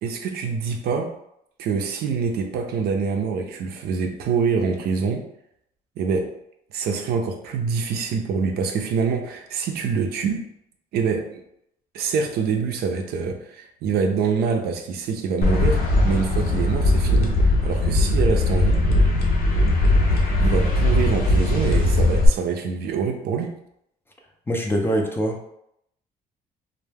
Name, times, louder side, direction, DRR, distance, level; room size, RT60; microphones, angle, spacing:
voice 1, 0.0-1.1 1.6-5.3 6.0-6.3 6.7-10.5 10.9-11.4 11.9-18.9 20.4-23.5, right 5 dB, 70° right, 4 dB, 0.4 m, -25 dB
sound 1, 15.4-22.3, left 1 dB, 65° left, 0.6 m, -19 dB
voice 2, 24.5-25.6, equal, 15° left, 1 dB, 0.4 m, -24 dB
2.2 x 2.1 x 3.2 m, 0.76 s
cardioid pair, 110°, 17 cm